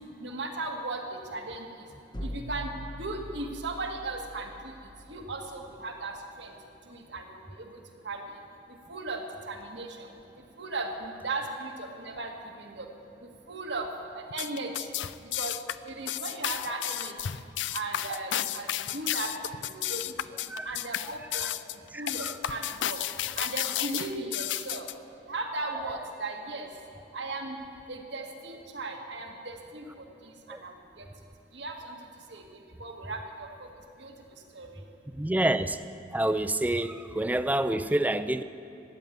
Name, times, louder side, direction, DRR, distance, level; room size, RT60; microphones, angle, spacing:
voice 1, 0.2-1.0 1.3-1.6 2.3-2.7 3.0-4.5 5.1-6.1 6.4-6.5 7.1-7.3 8.1-8.2 8.9-9.2 9.5-10.1 10.6-11.7 12.0-12.3 12.7-12.9 13.5-13.9 14.3-14.7 15.4-15.5 15.9-17.1 17.7-18.7 18.9-19.3 19.6-20.0 20.7-21.5 22.0-23.0 23.4-24.8 25.3-26.7 27.1-27.6 27.9-29.8 30.6-30.7 31.6-31.7 32.3-32.4 32.8-33.2 34.0-34.1 34.6-34.7, right 3 dB, 70° right, 3 dB, 1.8 m, -36 dB
sound 1, 2.1-6.0, equal, 25° left, 0.9 m, -42 dB
sound 2, 14.3-24.9, left 12 dB, 80° left, 0.4 m, -32 dB
voice 2, 20.5-21.5 21.9-22.7 25.9-26.0 30.5-30.6 35.1-35.8 36.1-38.4, right 1 dB, 10° right, 11 dB, 0.4 m, -29 dB
13.5 x 9.4 x 9.2 m, 2.9 s
head